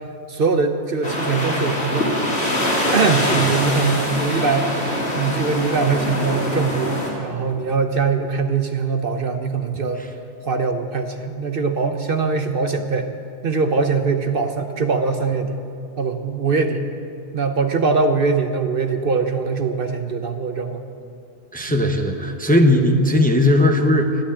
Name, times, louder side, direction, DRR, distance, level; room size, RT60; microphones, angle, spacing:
voice 1, 0.3-2.2 2.9-10.0 10.4-13.1 13.4-15.6 16.0-16.9 17.3-20.9 21.7-21.9, right 4 dB, 55° right, 6 dB, 0.9 m, -22 dB
sound 1, 1.0-7.1, left 1 dB, 80° left, 3.4 m, -23 dB
voice 2, 21.5-24.2, left 1 dB, 10° left, 4 dB, 0.8 m, -17 dB
13.0 x 12.0 x 8.6 m, 2.6 s
omnidirectional pair, 1.2 m